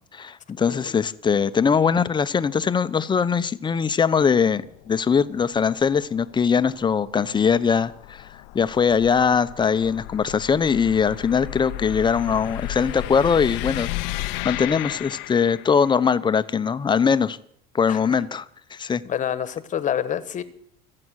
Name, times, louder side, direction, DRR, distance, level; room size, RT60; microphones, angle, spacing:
voice 1, 0.1-8.3 8.5-17.4 17.7-18.4 18.7-19.0, left 6 dB, 25° left, 0.9 m, -21 dB
sound 1, 4.6-15.9, left 18 dB, 70° left, 0.8 m, -34 dB
voice 2, 18.8-20.4, left 9 dB, 40° left, 1.3 m, -28 dB
25.5 x 8.7 x 6.4 m
supercardioid pair, 100°, 19 cm